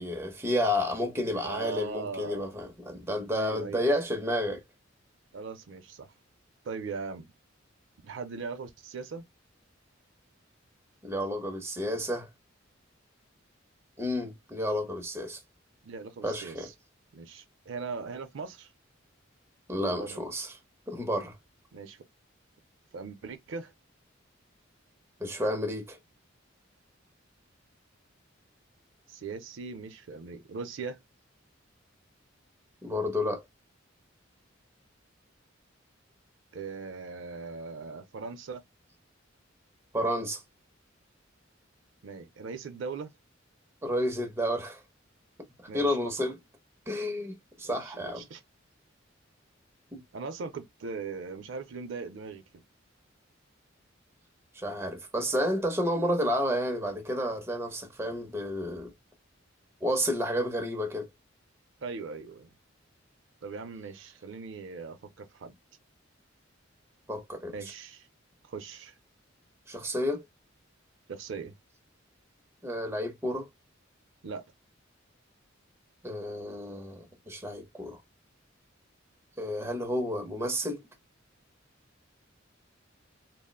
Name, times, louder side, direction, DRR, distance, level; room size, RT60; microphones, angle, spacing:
voice 1, 0.0-4.6 11.0-12.3 14.0-15.4 16.2-16.7 19.7-20.5 20.9-21.3 25.2-26.0 32.8-33.4 39.9-40.4 43.8-44.8 45.7-46.4 46.9-48.2 49.9-50.0 54.6-58.9 59.8-61.1 67.1-67.6 69.7-70.2 72.6-73.5 76.0-78.0 79.4-80.8, equal, 15° right, 0.6 m, -31 dB
voice 2, 1.4-2.5 3.3-4.0 5.3-6.1 6.6-7.3 8.0-9.3 15.8-16.7 17.1-18.7 19.8-20.2 21.7-22.0 22.9-23.7 29.1-31.0 36.5-38.6 42.0-43.1 45.7-46.3 47.6-48.4 50.1-52.6 61.8-62.5 63.4-65.6 67.5-68.1 68.4-68.9 71.1-71.6 74.2-74.4, right 4 dB, 70° right, 0.5 m, -40 dB
3.6 x 2.0 x 2.2 m
head